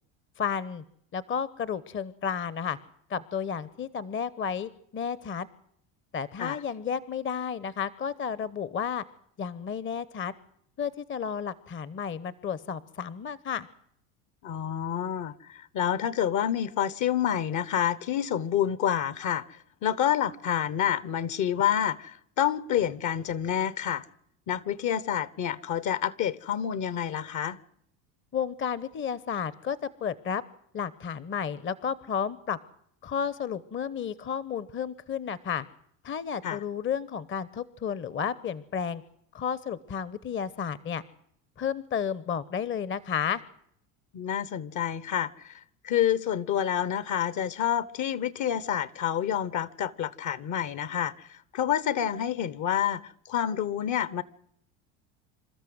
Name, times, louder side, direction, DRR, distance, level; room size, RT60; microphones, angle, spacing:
voice 1, 0.4-0.8 1.1-2.8 3.1-5.5 6.1-9.0 9.4-10.3 10.8-13.7 28.3-30.4 30.7-32.6 33.0-35.7 36.0-39.0 39.3-41.0 41.6-43.4, left 7 dB, 30° left, 0.9 m, -32 dB
voice 2, 14.4-24.0 24.5-27.6 36.4-36.6 44.1-54.2, left 10 dB, 50° left, 1.1 m, -28 dB
27.5 x 13.0 x 7.9 m
hypercardioid pair, 85°, 39 cm